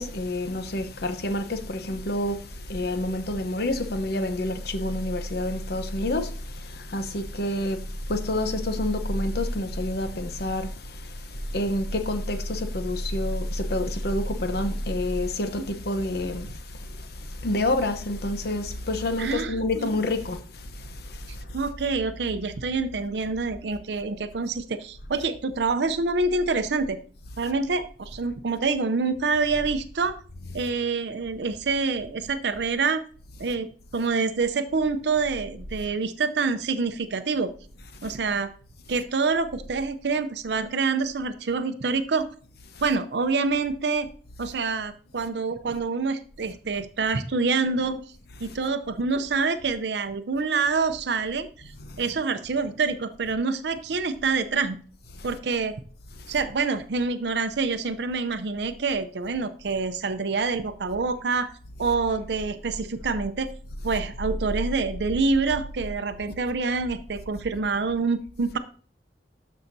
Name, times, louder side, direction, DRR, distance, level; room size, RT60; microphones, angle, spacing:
voice 1, 0.0-21.7 27.4-27.5 30.4-30.7 33.4-33.6 37.9-38.2 38.9-39.0 42.7-42.9 48.4-48.6 51.7-52.1 55.1-55.4 56.2-56.4 61.8-61.9 63.8-64.0, left 1 dB, 60° left, 0.9 m, -29 dB
voice 2, 19.2-19.9 21.5-27.0 27.4-30.2 30.5-33.0 33.4-33.7 33.9-37.5 38.0-38.5 38.9-42.2 42.8-44.1 44.4-48.0 48.4-51.5 52.0-54.8 55.2-55.7 56.3-61.5 61.8-63.5 63.8-68.6, right 4 dB, 70° right, 0.6 m, -26 dB
12.5 x 5.6 x 2.7 m
head